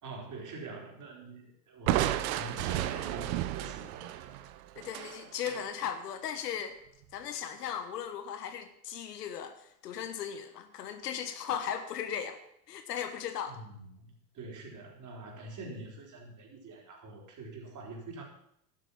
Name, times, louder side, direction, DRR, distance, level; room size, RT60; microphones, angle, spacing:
voice 1, 0.0-4.5 13.5-18.2, right 3 dB, 40° right, 1 dB, 4.4 m, -45 dB
Crushing, 1.9-5.7, right 13 dB, 60° right, 1.0 m, -32 dB
voice 2, 4.8-6.8 7.1-12.4 12.7-13.6, left 8 dB, 75° left, 9 dB, 1.3 m, -37 dB
12.0 x 9.2 x 7.2 m, 0.73 s
hypercardioid pair, 80°, 48 cm